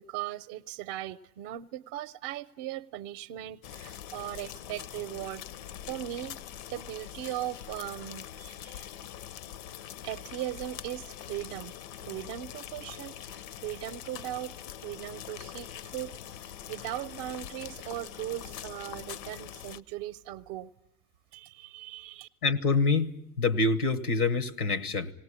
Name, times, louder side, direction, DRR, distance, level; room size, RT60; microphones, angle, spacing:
voice 1, 0.0-5.4 5.9-6.4 6.7-8.9 10.0-11.8 12.0-14.6 14.8-16.2 16.4-20.7 21.3-22.3, right 13 dB, 50° right, 10 dB, 0.7 m, -38 dB
sound 1, 3.6-19.8, left 10 dB, 60° left, 0.8 m, -43 dB
voice 2, 22.4-23.1 23.4-25.1, left 3 dB, 90° left, 16 dB, 1.4 m, -26 dB
18.5 x 18.5 x 9.7 m, 0.78 s
hypercardioid pair, 75°, 44 cm